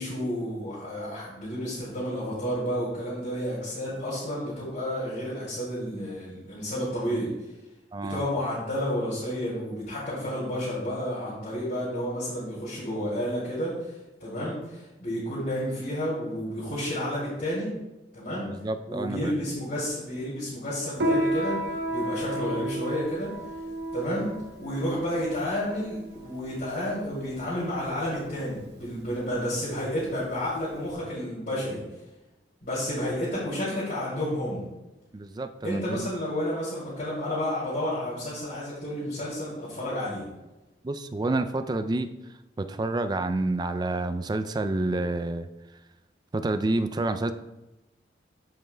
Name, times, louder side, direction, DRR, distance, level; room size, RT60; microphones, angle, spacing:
voice 1, 0.0-7.3 8.0-13.9 14.2-17.7 18.1-18.5 18.9-23.3 23.9-24.3 24.6-31.8 32.6-34.7 35.6-40.3, equal, 55° left, -10 dB, 2.6 m, -31 dB
voice 2, 7.9-8.2 18.5-19.3 35.1-35.8 40.8-42.1 42.6-45.5 46.3-47.3, right 2 dB, 25° right, 9 dB, 0.3 m, -28 dB
Piano, 21.0-30.9, right 1 dB, 65° right, 1.0 m, -32 dB
13.5 x 5.3 x 2.2 m, 1.0 s
head